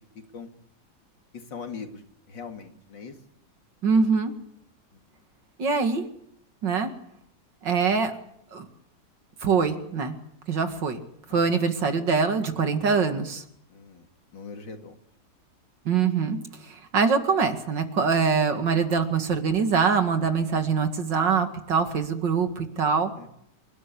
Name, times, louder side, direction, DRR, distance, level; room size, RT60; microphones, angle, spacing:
voice 1, 1.3-3.1 4.9-5.0 11.3-11.4 13.7-14.1 14.3-15.0 23.2-23.3, left 5 dB, 75° left, 5 dB, 3.1 m, -40 dB
voice 2, 3.8-4.3 5.6-6.0 6.6-6.9 7.6-8.2 8.5-8.7 9.4-10.2 10.5-11.0 11.3-13.4 15.9-16.4 16.6-23.1, right 5 dB, 75° right, 7 dB, 2.7 m, -23 dB
28.5 x 12.5 x 10.0 m, 0.73 s
omnidirectional pair, 2.0 m